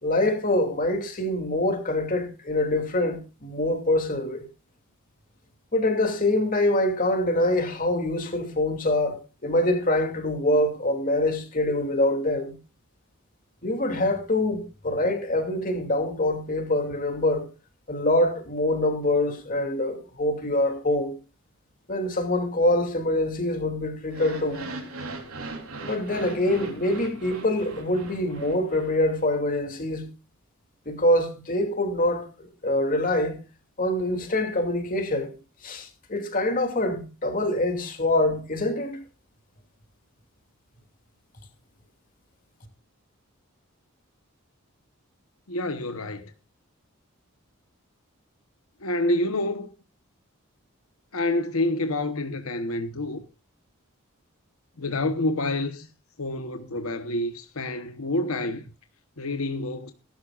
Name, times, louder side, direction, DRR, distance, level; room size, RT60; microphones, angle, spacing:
voice 1, 0.0-4.5 5.7-12.5 13.6-17.5 17.9-21.2 21.9-24.6 25.9-30.1 30.9-33.4 33.8-35.3 35.6-39.0, left 1 dB, 40° left, 2.7 m, -25 dB
sound 1, 24.0-29.2, right 2 dB, 80° right, 3.6 m, -39 dB
voice 2, 45.5-46.3 48.8-49.7 51.1-53.2 54.8-55.9 56.2-58.6 59.2-59.9, left 1 dB, 80° left, 1.1 m, -28 dB
19.0 x 12.0 x 2.5 m
head